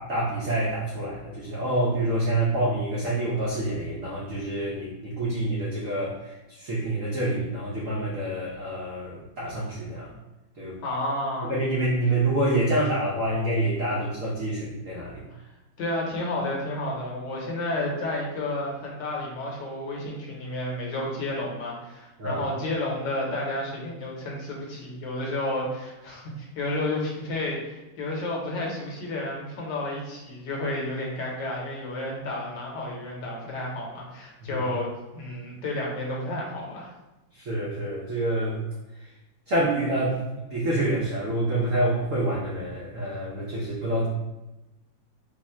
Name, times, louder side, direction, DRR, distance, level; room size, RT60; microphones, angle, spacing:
voice 1, 0.0-10.1 10.6-10.8 11.4-15.2 22.2-22.4 34.4-34.6 37.4-38.6 39.5-40.2 40.5-44.1, right 1 dB, 70° right, -6 dB, 0.7 m, -27 dB
voice 2, 10.8-11.5 15.3-15.5 15.8-34.9 35.1-36.9, left 1 dB, 65° left, -2 dB, 1.3 m, -31 dB
3.5 x 2.1 x 4.2 m, 1.0 s
omnidirectional pair, 2.2 m